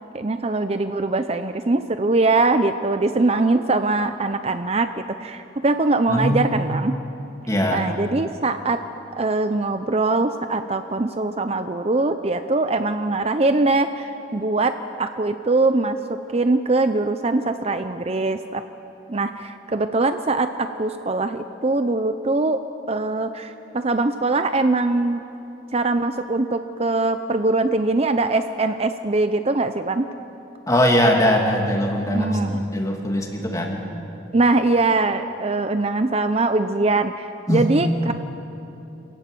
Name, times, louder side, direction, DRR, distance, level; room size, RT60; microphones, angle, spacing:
voice 1, 0.1-6.9 7.7-8.8 9.2-16.0 16.3-18.6 19.1-22.6 22.9-25.2 25.7-30.1 32.1-32.6 34.3-38.1, right 2 dB, 30° right, 9 dB, 0.6 m, -22 dB
voice 2, 6.1-6.6 7.5-7.8 30.7-33.8 37.5-37.7, equal, 15° left, 1 dB, 2.5 m, -21 dB
26.0 x 15.0 x 9.2 m, 2.9 s
head